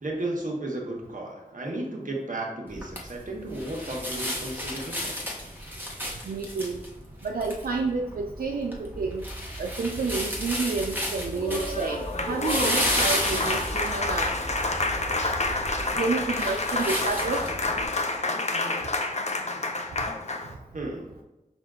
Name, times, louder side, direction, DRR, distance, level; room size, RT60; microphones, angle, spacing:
voice 1, 0.0-5.2 20.7-21.1, right 1 dB, 60° right, -1 dB, 1.1 m, -34 dB
sound 1, 2.7-17.8, equal, 15° right, 1.1 m, -33 dB
voice 2, 6.2-6.8 7.2-9.2 9.6-14.3 15.2-15.3 15.9-17.4, right 4 dB, 85° right, 1 dB, 0.4 m, -29 dB
Applause, 11.3-20.5, left 2 dB, 50° left, 0.5 m, -29 dB
5.9 x 2.4 x 3.7 m, 1.0 s
wide cardioid pair, 65°, 15 cm